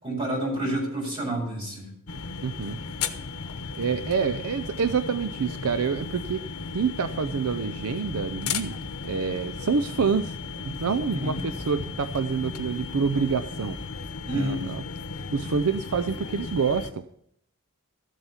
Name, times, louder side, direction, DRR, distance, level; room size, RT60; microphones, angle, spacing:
voice 1, 0.0-1.9 11.0-11.4 14.3-14.7, right 1 dB, 25° right, -3 dB, 5.8 m, -29 dB
sound 1, 2.1-16.9, left 5 dB, 85° left, 1.0 m, -35 dB
voice 2, 2.4-2.8 3.8-6.4 6.7-10.4 10.7-13.8 14.3-14.8 15.3-17.0, right 5 dB, 85° right, 11 dB, 0.5 m, -27 dB
13.5 x 8.0 x 5.7 m, 0.71 s
head